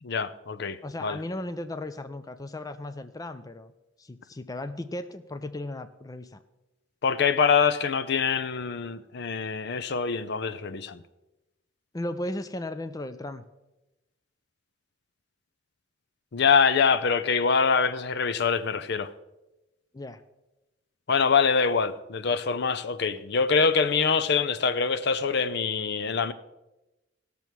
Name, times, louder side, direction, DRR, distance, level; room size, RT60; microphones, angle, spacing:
voice 1, 0.0-1.2 7.0-11.0 16.3-19.1 21.1-26.3, left 5 dB, 60° left, 0.6 m, -24 dB
voice 2, 0.8-3.7 4.0-6.4 11.9-13.4 19.9-20.2, left 1 dB, 20° left, 0.4 m, -36 dB
17.0 x 6.9 x 4.6 m
head